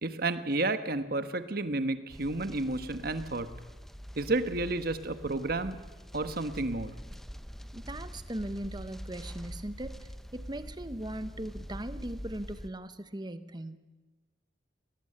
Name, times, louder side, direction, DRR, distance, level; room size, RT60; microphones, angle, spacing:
voice 1, 0.0-3.5 4.2-5.8 6.1-6.9, right 2 dB, 55° right, 11 dB, 1.3 m, -31 dB
sound 1, 2.1-12.7, equal, ahead, 0.7 m, -44 dB
voice 2, 7.7-13.8, right 1 dB, 25° right, 12 dB, 1.0 m, -39 dB
19.5 x 18.5 x 8.7 m, 1.2 s
head